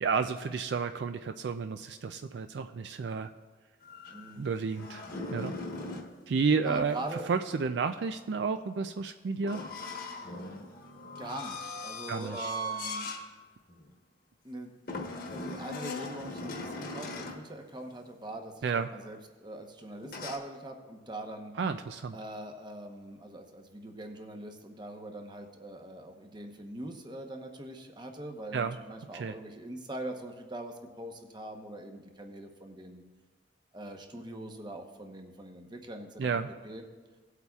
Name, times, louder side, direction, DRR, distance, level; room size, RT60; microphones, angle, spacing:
voice 1, 0.0-3.3 4.4-5.0 5.3-5.5 6.3-7.0 7.3-9.6 12.1-12.5 18.6-18.9 21.6-22.2 28.5-28.8 29.1-29.3 36.2-36.5, right 5 dB, 65° right, 9 dB, 0.4 m, -31 dB
sound 1, 3.8-6.1 9.4-13.3 13.7-13.9 14.9-17.5 20.0-20.4, left 1 dB, 50° left, 1.2 m, -39 dB
voice 2, 4.1-4.5 6.6-7.3 11.2-13.1 14.4-14.7 15.1-21.5 22.1-33.0 33.7-36.4 36.6-36.8, right 1 dB, 25° right, 4 dB, 0.9 m, -42 dB
18.0 x 8.2 x 2.4 m, 1.4 s
head